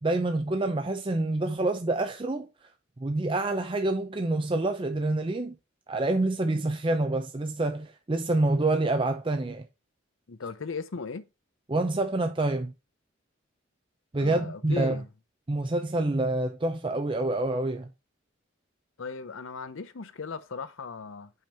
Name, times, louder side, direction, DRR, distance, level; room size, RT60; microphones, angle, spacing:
voice 1, 0.0-2.5 3.0-5.5 5.9-9.6 11.7-12.7 14.1-15.0 15.5-17.9, right 2 dB, 25° right, 0.5 m, -27 dB
voice 2, 10.3-11.3 14.2-15.1 19.0-21.3, left 4 dB, 75° left, 0.7 m, -37 dB
5.6 x 5.2 x 4.3 m
head